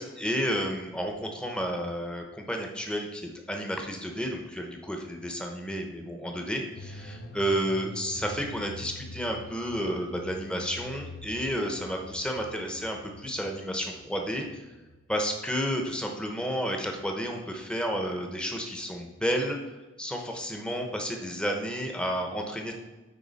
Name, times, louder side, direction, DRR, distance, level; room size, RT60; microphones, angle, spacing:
voice 1, 0.0-14.7 15.1-19.6 20.0-22.7, equal, 5° left, 2 dB, 0.8 m, -31 dB
sound 1, 6.8-16.6 16.9-17.0, left 1 dB, 50° left, 0.7 m, -46 dB
9.3 x 4.2 x 4.1 m, 1.2 s
head